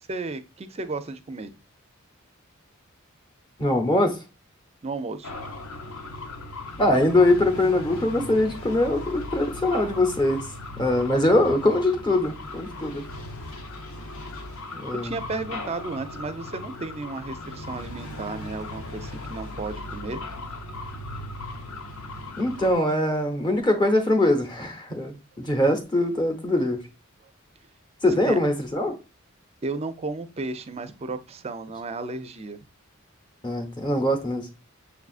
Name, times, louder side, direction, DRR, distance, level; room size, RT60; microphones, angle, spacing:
voice 1, 0.1-1.5 4.8-5.3 14.9-20.2 28.1-28.4 29.6-32.6, right 3 dB, 30° right, 0.4 m, -33 dB
voice 2, 3.6-4.2 6.8-10.5 10.8-13.0 14.7-15.2 22.4-26.8 28.0-28.9 33.4-34.5, left 1 dB, 20° left, 0.8 m, -22 dB
sound 1, 5.2-22.7, left 2 dB, 75° left, 0.9 m, -37 dB
6.8 x 2.4 x 2.4 m
head